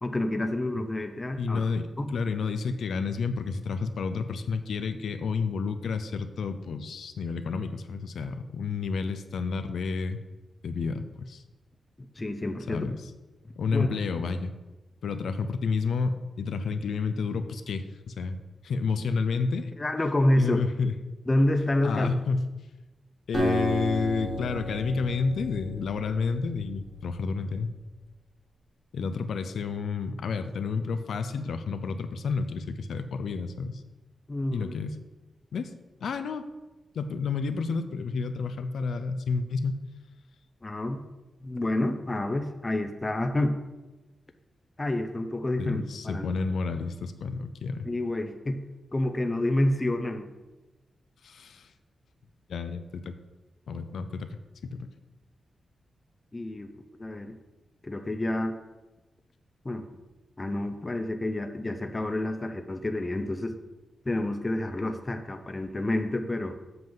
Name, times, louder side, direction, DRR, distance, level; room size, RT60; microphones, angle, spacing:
voice 1, 0.0-1.7 2.0-2.1 12.0-12.9 13.7-13.9 19.8-20.6 21.3-22.1 34.3-34.7 40.6-41.0 41.4-43.6 44.8-46.3 47.8-48.6 48.9-50.3 56.3-57.4 57.8-58.6 59.6-59.9 60.4-63.6 64.1-66.6, left 1 dB, 20° left, 7 dB, 0.5 m, -28 dB
voice 2, 1.4-10.2 10.6-11.4 12.7-12.9 13.6-14.5 15.0-18.4 18.6-19.7 20.4-20.9 21.8-22.5 23.3-27.7 28.9-33.8 34.5-34.9 35.5-35.7 36.0-36.5 36.9-39.8 45.6-47.9 51.2-51.7 52.5-53.1 53.7-54.4 54.6-54.9, left 4 dB, 75° left, 9 dB, 0.5 m, -30 dB
Acoustic guitar, 23.3-26.9, equal, 40° right, 2.0 m, -32 dB
7.7 x 7.3 x 3.9 m, 1.1 s
wide cardioid pair, 175°, 0 cm